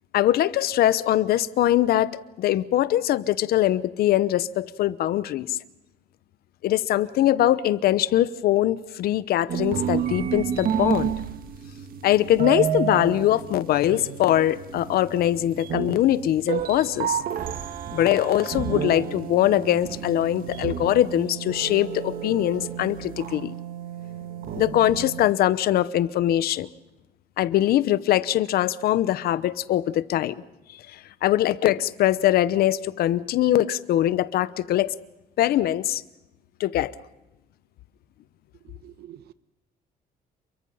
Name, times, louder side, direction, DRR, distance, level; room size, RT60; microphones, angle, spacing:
voice 1, 0.1-5.6 6.6-11.1 12.0-17.2 17.9-23.5 24.6-26.7 27.4-30.3 31.2-34.9 35.4-36.0 36.6-36.9, left 13 dB, 70° left, 17 dB, 0.9 m, -22 dB
sound 1, 9.5-25.2, right 9 dB, 60° right, 1.8 m, -31 dB
voice 2, 38.7-39.3, right 12 dB, 75° right, 14 dB, 1.2 m, -46 dB
29.0 x 23.0 x 5.7 m, 0.98 s
cardioid pair, 170°, 16 cm